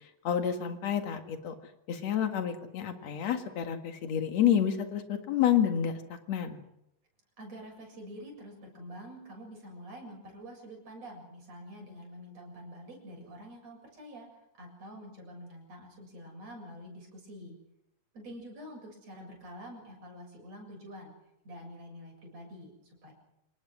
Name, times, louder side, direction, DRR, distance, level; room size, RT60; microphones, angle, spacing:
voice 1, 0.2-1.5 1.9-6.6, left 9 dB, 60° left, 6 dB, 3.0 m, -29 dB
voice 2, 7.4-17.6 18.1-21.1 21.4-23.1, equal, 50° right, 0 dB, 8.3 m, -47 dB
28.5 x 19.5 x 6.3 m, 0.83 s
omnidirectional pair, 3.7 m